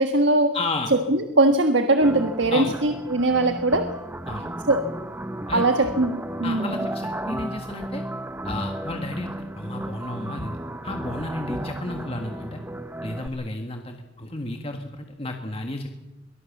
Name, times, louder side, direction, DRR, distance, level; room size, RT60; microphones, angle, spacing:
voice 1, 0.0-0.5 0.9-3.9 4.7-4.8 5.5-6.7, right 2 dB, 70° right, 7 dB, 1.4 m, -21 dB
voice 2, 0.5-0.9 2.5-2.8 4.3-4.5 5.5-5.9 6.4-8.0 8.4-12.6 13.0-15.9, left 2 dB, 30° left, 4 dB, 1.6 m, -32 dB
sound 1, 2.0-13.3, right 1 dB, 10° right, 0.8 m, -34 dB
23.0 x 18.5 x 7.3 m, 1.0 s
head